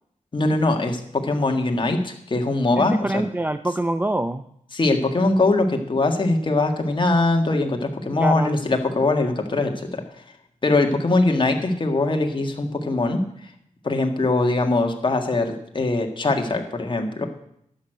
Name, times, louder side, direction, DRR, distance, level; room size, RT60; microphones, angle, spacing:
voice 1, 0.3-3.2 4.7-10.0 10.6-13.2 13.8-17.3, left 2 dB, 40° left, 4 dB, 1.7 m, -22 dB
voice 2, 2.8-4.4 8.2-8.6, right 1 dB, 15° right, 10 dB, 0.4 m, -25 dB
11.0 x 6.6 x 9.0 m, 0.73 s
wide cardioid pair, 90°, 13 cm